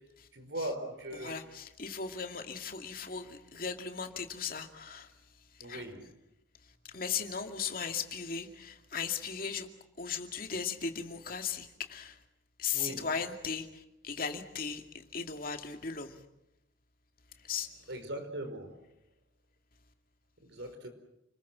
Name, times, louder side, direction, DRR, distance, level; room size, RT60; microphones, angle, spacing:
voice 1, 0.3-1.3 5.6-6.1 12.7-13.1 17.9-18.8 20.4-20.9, right 1 dB, 65° right, 7 dB, 4.9 m, -39 dB
voice 2, 1.1-5.1 5.5-5.8 6.8-9.7 10.0-12.2 12.6-16.2 17.4-17.7, left 6 dB, 45° left, 5 dB, 2.4 m, -37 dB
30.0 x 21.5 x 7.5 m, 0.84 s
head